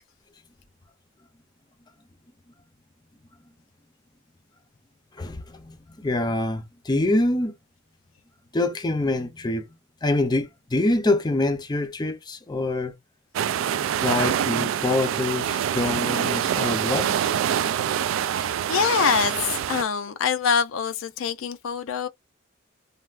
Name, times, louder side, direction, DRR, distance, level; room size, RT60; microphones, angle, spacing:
voice 1, 5.2-7.5 8.5-9.7 10.0-12.9 14.0-17.3 17.7-17.8, left 2 dB, 20° left, 0.5 m, -25 dB
sound 1, 13.3-19.8, right 9 dB, 80° right, 0.3 m, -25 dB
voice 2, 18.7-22.1, left 6 dB, 80° left, 0.4 m, -24 dB
3.3 x 2.3 x 2.4 m
head